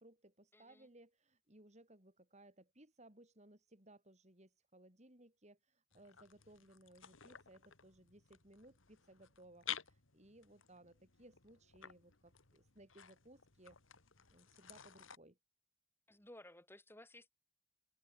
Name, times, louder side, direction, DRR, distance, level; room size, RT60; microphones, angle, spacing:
voice 1, 0.0-13.8 14.3-15.4, right 1 dB, 35° right, 4.5 m, -62 dB
voice 2, 0.5-0.9 16.1-17.3, left 1 dB, 10° left, 3.3 m, -58 dB
sound 1, 5.9-15.2, left 10 dB, 75° left, 2.5 m, -53 dB
head